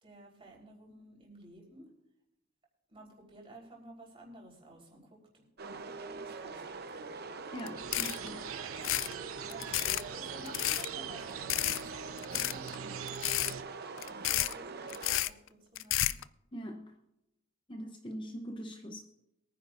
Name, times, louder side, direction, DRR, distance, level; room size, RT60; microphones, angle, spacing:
voice 1, 0.0-1.9 2.9-7.1 9.4-12.6 13.6-14.0 14.3-16.2, right 1 dB, 25° right, -2 dB, 4.1 m, -53 dB
sound 1, 5.6-15.2, right 4 dB, 45° right, 0.8 m, -43 dB
voice 2, 7.5-8.5 16.5-16.9 17.7-19.0, equal, 25° left, 4 dB, 0.8 m, -42 dB
sound 2, 7.6-7.7 7.9-8.3 8.8-9.1 9.5-10.0 10.5-10.9 11.5-11.8 12.2-12.8 13.1-13.5 14.0-14.5 14.9-15.3 15.8-16.2, left 15 dB, 65° left, 0.4 m, -31 dB
sound 3, 7.8-13.6, right 9 dB, 75° right, 0.8 m, -44 dB
23.0 x 9.9 x 2.6 m, 0.90 s
head